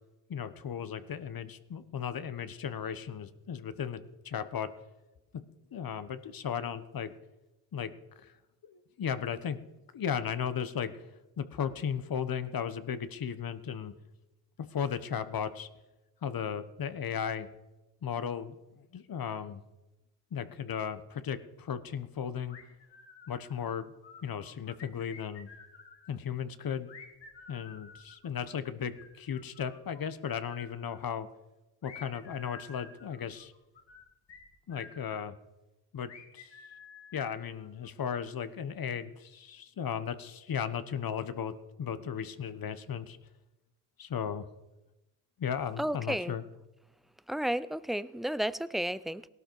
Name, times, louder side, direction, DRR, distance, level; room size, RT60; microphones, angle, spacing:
voice 1, 0.3-4.7 5.3-5.4 5.7-7.1 7.7-7.9 8.2-8.3 8.6-9.6 9.9-10.9 11.4-13.9 14.7-15.7 16.2-17.5 18.0-19.6 20.3-22.6 23.3-23.9 24.2-25.5 26.1-26.9 27.5-31.3 31.8-33.5 34.7-35.3 35.9-36.5 37.1-43.2 44.0-44.5 45.4-46.4, left 7 dB, 50° left, 12 dB, 1.2 m, -36 dB
sound 1, 22.5-23.7 24.0-26.1 26.9-30.0 30.3-31.1 31.8-35.2 36.1-37.9, left 5 dB, 65° left, 2.5 m, -52 dB
voice 2, 45.8-46.3 47.3-49.3, right 1 dB, ahead, 17 dB, 0.4 m, -32 dB
17.5 x 12.0 x 4.7 m, 1.0 s
cardioid pair, 75°, 46 cm